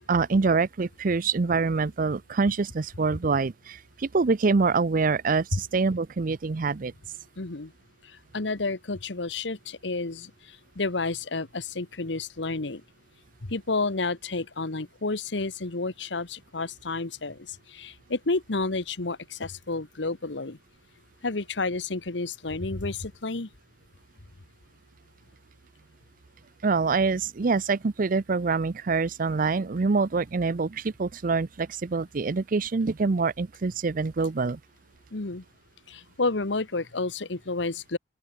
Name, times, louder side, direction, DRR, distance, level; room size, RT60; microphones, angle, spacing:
voice 1, 0.1-6.9 26.6-34.6, right 4 dB, 50° right, 0.5 m, -25 dB
voice 2, 7.4-7.7 8.3-12.8 13.4-20.6 21.2-23.5 35.1-35.4 35.9-38.0, left 3 dB, 75° left, 1.3 m, -30 dB
open air
head